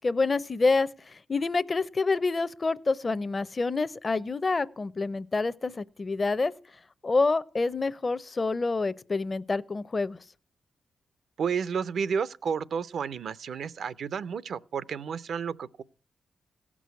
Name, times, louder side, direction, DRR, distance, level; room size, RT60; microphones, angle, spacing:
voice 1, 0.0-6.5 7.0-10.2, left 3 dB, 35° left, 0.6 m, -27 dB
voice 2, 11.4-15.8, right 6 dB, 75° right, 0.5 m, -31 dB
16.5 x 6.1 x 9.4 m
cardioid pair, 75°, 0 cm